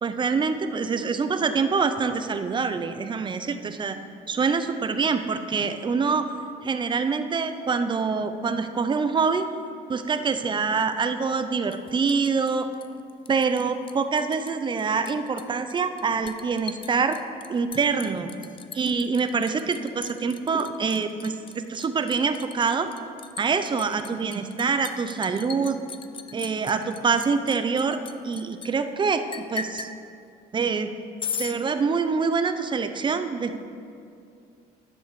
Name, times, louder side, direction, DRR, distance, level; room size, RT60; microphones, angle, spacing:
voice 1, 0.0-4.0 4.3-6.3 6.6-9.5 9.9-12.7 13.3-17.2 17.5-18.3 18.7-21.3 21.7-22.9 23.4-25.8 26.3-29.9 30.5-30.9 31.4-33.6, right 5 dB, 30° right, 9 dB, 0.6 m, -25 dB
Liquid, 11.7-13.6 13.9-14.5 14.8-28.7 29.3-29.9 31.2-31.6, left 6 dB, 30° left, 0.5 m, -38 dB
10.5 x 5.4 x 6.9 m, 2.4 s
cardioid pair, 110°, 17 cm